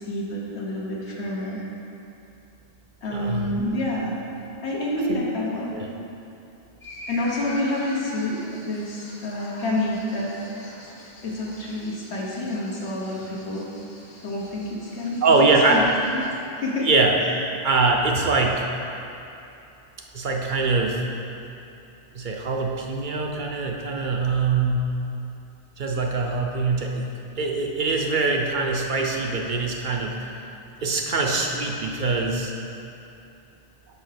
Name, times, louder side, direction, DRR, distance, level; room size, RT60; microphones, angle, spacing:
voice 1, 0.0-1.6 3.0-4.1 4.6-5.8 7.1-10.3 11.2-13.7 14.2-15.2 15.7-16.2 16.6-16.9 17.2-17.3, left 1 dB, 85° left, -4 dB, 1.4 m, -28 dB
voice 2, 3.1-3.5 5.1-5.2 5.7-5.9 15.2-15.8 16.8-17.1 17.6-18.6 20.1-21.0 22.1-24.9 25.8-27.1 27.4-30.1 30.8-32.5, right 3 dB, 55° right, 1 dB, 0.6 m, -23 dB
sound 1, 6.8-16.4, left 1 dB, 60° left, 1.4 m, -43 dB
5.6 x 4.8 x 5.8 m, 2.8 s
omnidirectional pair, 1.1 m